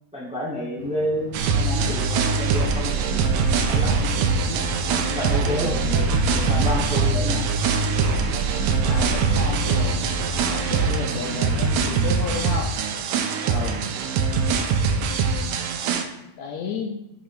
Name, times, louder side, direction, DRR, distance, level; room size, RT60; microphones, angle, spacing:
voice 1, 0.1-3.3 3.7-4.0 4.9-5.8 6.3-7.6 13.4-13.8, equal, 10° right, -6 dB, 0.4 m, -29 dB
sound 1, 0.8-12.0, left 1 dB, 35° left, 1.1 m, -39 dB
sound 2, 1.3-16.0, right 4 dB, 80° right, 1.7 m, -22 dB
voice 2, 5.4-5.8 8.9-10.1 10.5-12.8 15.2-15.6 16.2-17.0, left 4 dB, 75° left, 2 dB, 1.8 m, -32 dB
8.3 x 3.0 x 4.7 m, 0.88 s
omnidirectional pair, 3.6 m